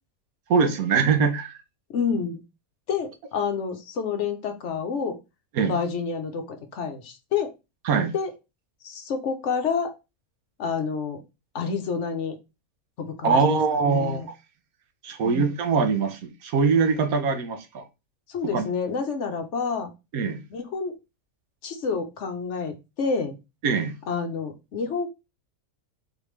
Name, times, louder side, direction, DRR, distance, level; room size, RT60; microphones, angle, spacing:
voice 1, 0.5-1.6 5.5-5.8 7.8-8.1 13.2-14.2 15.0-17.8 18.5-18.6 20.1-20.4 23.6-23.9, right 5 dB, 85° right, 1.2 m, -22 dB
voice 2, 1.9-2.4 2.9-5.2 5.7-7.5 8.1-8.3 8.8-9.9 10.6-11.2 11.5-12.4 13.0-14.3 15.2-15.5 18.3-19.9 20.5-21.0 21.6-23.4 24.1-25.1, left 5 dB, 60° left, 0.9 m, -28 dB
4.1 x 3.4 x 3.1 m
omnidirectional pair, 1.5 m